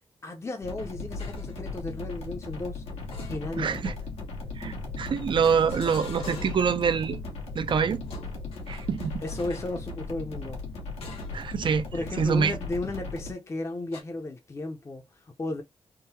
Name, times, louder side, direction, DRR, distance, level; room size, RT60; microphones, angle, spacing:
voice 1, 0.2-2.8 3.2-4.0 9.2-10.6 11.9-15.6, left 2 dB, 30° left, 0.6 m, -34 dB
sound 1, 0.6-13.3, left 3 dB, 90° left, 1.3 m, -37 dB
sound 2, 1.2-1.6 3.1-3.9 5.4-6.8 8.0-9.8 11.0-11.5 11.9-12.1 13.9-14.0, left 3 dB, 70° left, 1.4 m, -44 dB
voice 2, 3.6-3.9 4.6-7.2 7.6-8.0 8.7-9.2 11.3-11.9 12.2-12.5, right 6 dB, 55° right, 0.5 m, -25 dB
3.7 x 2.1 x 2.7 m
cardioid pair, 80°, 10 cm